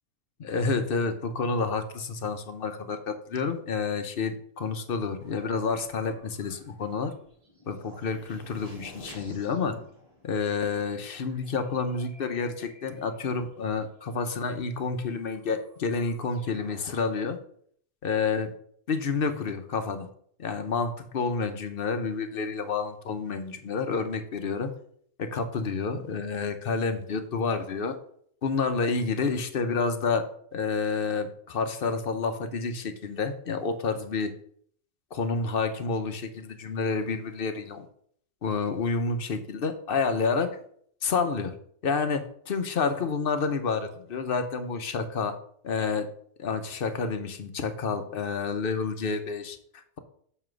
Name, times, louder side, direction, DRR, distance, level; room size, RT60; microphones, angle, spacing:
voice 1, 0.4-7.1 7.7-9.8 10.2-17.4 18.0-18.5 18.9-20.1 20.4-24.7 25.2-28.0 28.4-30.3 30.5-34.3 35.1-37.9 38.4-40.5 41.0-41.5 41.8-45.4 45.6-46.1 46.4-50.0, left 4 dB, 55° left, 8 dB, 0.9 m, -29 dB
sound 1, 5.2-13.4 14.5-14.6 15.0-17.0, left 1 dB, 30° right, 1.6 m, -52 dB
7.1 x 3.3 x 6.1 m, 0.62 s
omnidirectional pair, 1.3 m